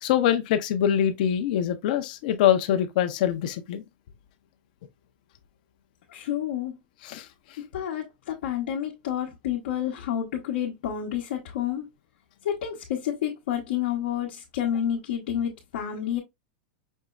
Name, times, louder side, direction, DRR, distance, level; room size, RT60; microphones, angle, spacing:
voice 1, 0.0-3.8 7.0-7.3, left 10 dB, 55° left, 0.5 m, -24 dB
voice 2, 6.1-6.8 7.7-11.9 12.4-16.2, left 10 dB, 80° left, 0.9 m, -29 dB
5.4 x 3.0 x 2.3 m
supercardioid pair, 170°, 6 cm